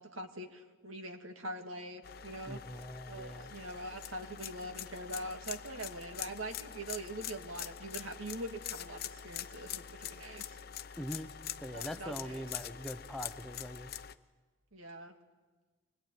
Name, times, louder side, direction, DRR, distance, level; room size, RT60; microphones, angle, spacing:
voice 1, 0.0-2.6 3.1-10.6 11.7-12.4 14.7-15.2, right 1 dB, 85° right, 5 dB, 2.2 m, -43 dB
sound 1, 2.0-14.1, left 10 dB, 45° left, 0.7 m, -44 dB
voice 2, 2.5-3.5 11.0-11.3 11.6-13.9, equal, ahead, 7 dB, 0.8 m, -42 dB
24.5 x 21.0 x 9.2 m, 1.3 s
head